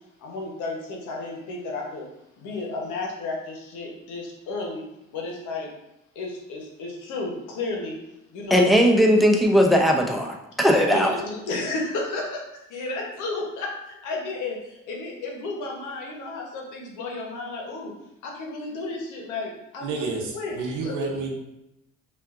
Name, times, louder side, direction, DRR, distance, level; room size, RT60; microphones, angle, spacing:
voice 1, 0.2-2.1 2.4-4.8 5.1-5.7 6.1-8.0 8.3-8.7 10.9-12.4 12.7-17.9 18.2-20.0 20.3-20.6 20.8-21.0, left 3 dB, 90° left, -1 dB, 1.0 m, -32 dB
voice 2, 8.5-11.2, equal, ahead, 1 dB, 0.6 m, -18 dB
voice 3, 19.8-21.3, right 3 dB, 80° right, 1 dB, 0.9 m, -30 dB
5.5 x 2.4 x 2.5 m, 0.88 s
cardioid pair, 90°, 30 cm